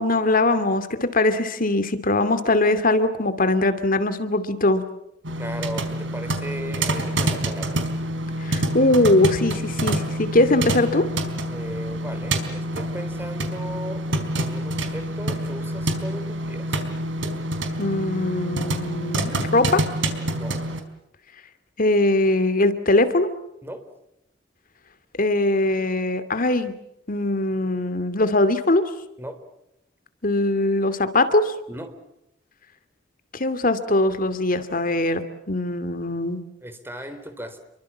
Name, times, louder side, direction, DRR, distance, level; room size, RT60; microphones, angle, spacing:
voice 1, 0.0-4.8 8.4-11.1 17.8-19.8 21.8-23.3 25.2-26.7 27.1-28.8 30.2-31.5 33.3-35.2 35.5-36.4, left 2 dB, 50° left, 11 dB, 2.5 m, -21 dB
sound 1, 5.2-20.8, right 1 dB, 85° right, 4.2 m, -27 dB
voice 2, 5.4-7.8 11.5-14.0 14.4-16.9 20.3-20.6 23.6-23.8 29.2-29.4 31.7-32.0 36.6-37.6, equal, 10° right, 9 dB, 3.9 m, -36 dB
29.5 x 23.5 x 7.4 m, 0.82 s
head